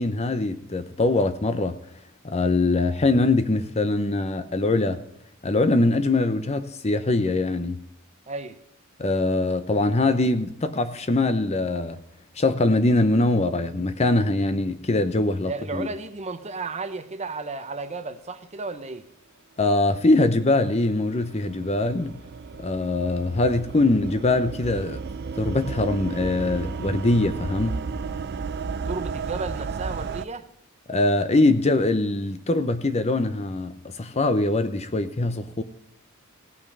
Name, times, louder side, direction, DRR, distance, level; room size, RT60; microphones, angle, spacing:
voice 1, 0.0-1.8 2.2-5.0 5.4-7.8 9.0-12.0 12.4-15.9 19.6-22.2 22.6-25.0 25.4-27.8 30.9-35.6, left 2 dB, 30° left, 0.7 m, -22 dB
voice 2, 8.3-8.6 15.5-19.1 28.9-30.5, right 3 dB, 30° right, 0.8 m, -33 dB
sound 1, 20.6-30.3, right 5 dB, 50° right, 0.4 m, -33 dB
17.0 x 5.8 x 5.4 m
head